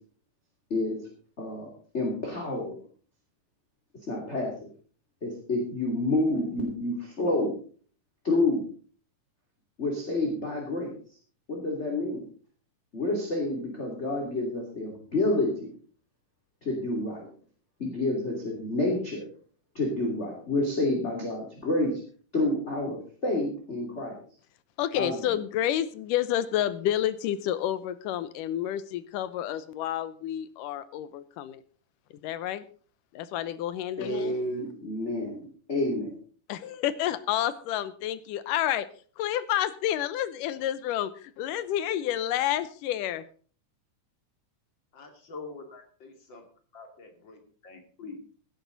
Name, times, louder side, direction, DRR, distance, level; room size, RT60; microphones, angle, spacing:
voice 1, 1.4-1.7 1.9-2.8 4.1-4.5 5.2-7.5 8.2-8.6 9.8-11.0 11.5-12.2 12.9-15.5 16.6-17.3 17.8-19.2 19.7-22.0 22.3-24.2 24.9-25.2 34.0-36.2, left 2 dB, 20° left, -1 dB, 2.8 m, -28 dB
voice 2, 24.8-31.6 32.2-32.7 33.1-34.4 36.5-38.9 39.2-43.3, left 11 dB, 85° left, 15 dB, 2.4 m, -29 dB
voice 3, 44.9-46.4 46.7-48.3, left 4 dB, 35° left, 4 dB, 2.9 m, -45 dB
16.5 x 10.5 x 4.0 m, 0.43 s
omnidirectional pair, 3.8 m